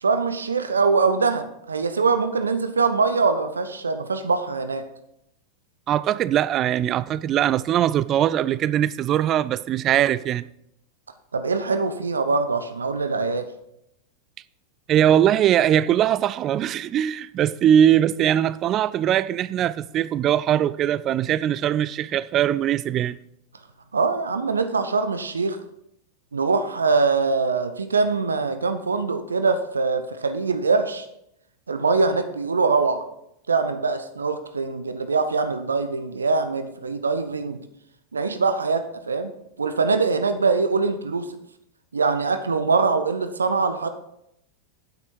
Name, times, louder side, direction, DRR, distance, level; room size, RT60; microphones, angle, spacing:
voice 1, 0.0-4.8 11.3-13.5 23.9-25.6 26.3-31.1 31.7-33.0 33.5-37.6 38.1-39.3 39.6-41.4 41.9-43.9, right 4 dB, 75° right, 0.7 m, -23 dB
voice 2, 5.9-10.5 14.9-23.2, right 10 dB, 30° right, 0.4 m, -21 dB
9.2 x 8.9 x 4.6 m
figure-of-eight pair, 90°, 0 cm